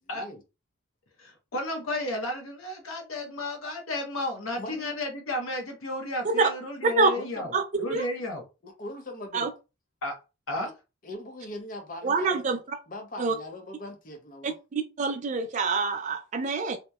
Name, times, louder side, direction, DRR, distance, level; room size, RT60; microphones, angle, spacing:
voice 1, 1.2-8.4 10.0-10.1 10.5-10.7, left 2 dB, 75° left, 0.7 m, -33 dB
voice 2, 4.6-4.9 7.1-7.6 8.6-9.5 11.0-12.6 12.9-14.6, left 1 dB, 40° left, 0.6 m, -40 dB
voice 3, 12.0-12.6 13.2-13.3 14.7-16.8, right 4 dB, 35° right, 0.3 m, -25 dB
2.7 x 2.1 x 2.3 m
head